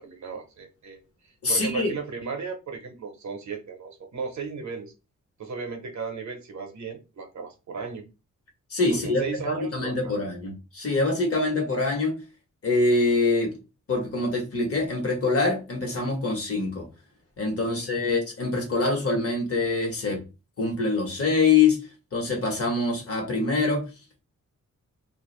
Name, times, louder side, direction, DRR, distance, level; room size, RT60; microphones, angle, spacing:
voice 1, 0.0-4.9 5.4-8.0 8.9-10.2 17.7-18.1, right 5 dB, 65° right, 0.7 m, -36 dB
voice 2, 1.4-1.9 8.7-12.2 12.6-13.6 13.9-16.9 17.4-20.2 20.6-21.8 22.1-23.9, left 3 dB, 50° left, 1.1 m, -24 dB
2.4 x 2.3 x 3.0 m
wide cardioid pair, 130°, 31 cm